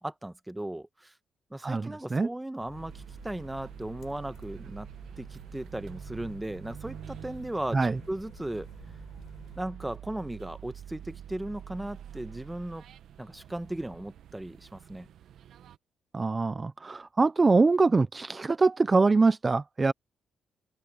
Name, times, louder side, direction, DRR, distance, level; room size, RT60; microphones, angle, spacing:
voice 1, 0.0-1.1 1.5-4.9 5.2-8.7 9.6-12.8 13.2-15.1, right 1 dB, 10° right, 1.1 m, -37 dB
voice 2, 1.6-2.3 7.7-8.0 16.1-19.9, right 3 dB, 25° right, 0.4 m, -24 dB
sound 1, 2.6-9.6, left 9 dB, 65° left, 6.1 m, -54 dB
sound 2, 2.7-15.8, right 10 dB, 75° right, 1.1 m, -46 dB
open air
cardioid pair, 130°, 0 cm